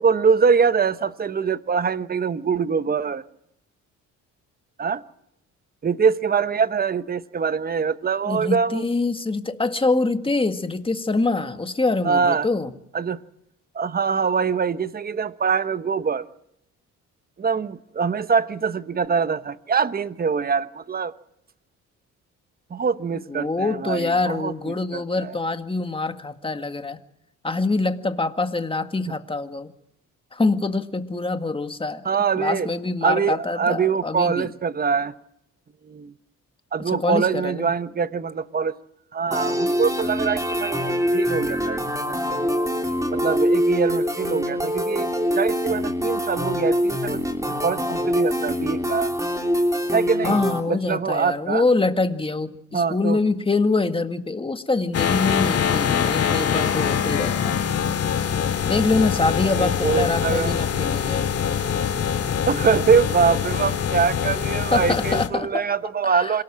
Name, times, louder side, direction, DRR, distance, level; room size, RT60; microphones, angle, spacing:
voice 1, 0.0-3.2 4.8-5.0 5.8-8.8 12.0-12.5 12.9-13.2 13.7-16.2 17.4-21.1 22.7-25.3 32.0-32.7 33.0-35.1 35.9-36.1 36.7-38.7 39.1-41.8 42.1-42.4 43.1-47.2 47.6-49.1 49.9-50.4 50.7-51.6 52.7-53.2 59.4-60.6 62.5-66.4, right 6 dB, 30° right, 1.0 m, -23 dB
voice 2, 8.2-12.7 23.1-27.0 27.4-29.7 30.3-32.1 32.4-34.5 36.8-37.7 50.2-57.6 58.7-61.3 64.7-65.7 66.0-66.4, left 3 dB, 15° left, 1.9 m, -25 dB
sound 1, 39.3-50.6, equal, 10° right, 3.3 m, -24 dB
sound 2, 54.9-65.3, left 8 dB, 55° left, 2.3 m, -24 dB
27.0 x 18.0 x 7.5 m
cardioid pair, 90°, 30 cm